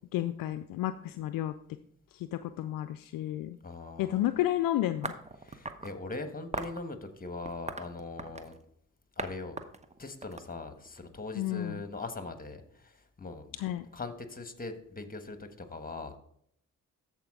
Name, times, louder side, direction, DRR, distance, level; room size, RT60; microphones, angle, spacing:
voice 1, 0.1-1.5 2.1-3.6 4.0-5.1 11.3-11.8 13.6-13.9, left 13 dB, 60° left, 12 dB, 0.5 m, -31 dB
voice 2, 3.6-4.3 5.4-8.6 9.2-9.6 10.0-13.6 13.9-16.2, left 3 dB, 20° left, 8 dB, 1.4 m, -41 dB
sound 1, 5.0-5.9 6.5-6.8 7.4-8.6 9.2-9.3 9.6-11.0, right 3 dB, 15° right, 0.9 m, -39 dB
13.5 x 4.8 x 3.7 m, 0.68 s
hypercardioid pair, 45°, 39 cm